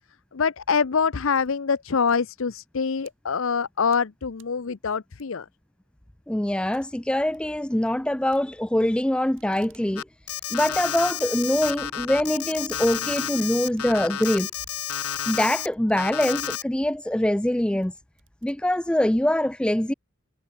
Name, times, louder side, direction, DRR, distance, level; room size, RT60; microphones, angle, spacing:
voice 1, 0.3-5.5, left 5 dB, 65° left, 0.6 m, -25 dB
sound 1, 0.8-1.7 2.0-3.1 3.6-4.1 4.3-4.6 5.2-5.6 5.9-6.0 6.3-6.4 6.7-6.9 7.2-7.5 8.3-9.0 9.3-9.9 10.2-10.3 10.5-10.6 11.1-11.8 12.2-12.3 13.3-16.8 17.4-17.5 17.8-19.1, right 7 dB, 55° right, 3.8 m, -57 dB
voice 2, 6.3-10.0 10.5-14.5 15.3-18.0 18.4-19.9, left 1 dB, 5° left, 0.3 m, -24 dB
Alarm, 10.0-15.7 16.0-16.6, left 10 dB, 85° left, 1.7 m, -31 dB
head